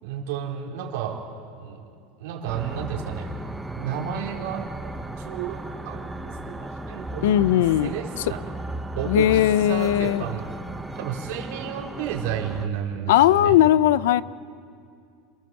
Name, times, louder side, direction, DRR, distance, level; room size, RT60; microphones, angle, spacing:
voice 1, 0.0-1.2 1.6-1.9 2.2-3.3 3.7-4.7 5.2-8.4 9.0-10.5 10.9-13.6, right 8 dB, 65° right, 0 dB, 4.1 m, -32 dB
sound 1, 2.5-12.7, right 1 dB, 5° right, 0.9 m, -35 dB
voice 2, 7.2-7.9 9.1-10.2 13.1-14.2, left 12 dB, 85° left, 18 dB, 0.6 m, -18 dB
27.5 x 18.5 x 7.7 m, 2.3 s
supercardioid pair, 165°, 0 cm